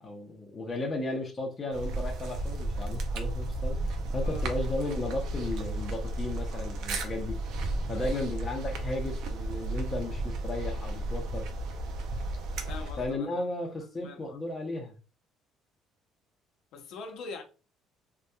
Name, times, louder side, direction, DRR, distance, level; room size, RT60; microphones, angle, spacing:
voice 1, 0.0-7.4 7.9-11.5 13.0-14.9, left 2 dB, 20° left, 0.6 m, -35 dB
sound 1, 1.7-13.1, right 2 dB, 70° right, 0.5 m, -33 dB
voice 2, 7.9-8.3 12.6-13.3 14.0-14.4 16.7-17.4, left 4 dB, 65° left, 0.6 m, -43 dB
2.7 x 2.2 x 2.2 m
cardioid pair, 155°, 0 cm